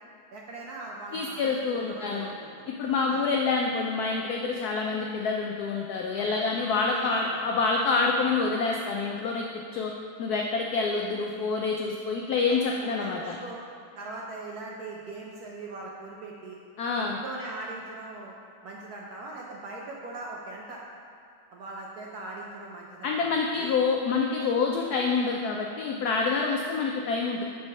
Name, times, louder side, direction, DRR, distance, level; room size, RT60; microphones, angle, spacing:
voice 1, 0.3-2.7 3.1-3.3 6.1-6.6 6.9-7.4 12.5-13.6 14.0-16.6 17.0-18.3 18.6-20.8 21.5-23.8, right 2 dB, 65° right, -2 dB, 1.0 m, -41 dB
voice 2, 1.1-2.3 2.7-9.9 10.2-13.4 16.8-17.2 23.0-27.4, left 4 dB, 80° left, 0 dB, 0.8 m, -27 dB
6.2 x 4.0 x 5.3 m, 2.5 s
omnidirectional pair, 2.2 m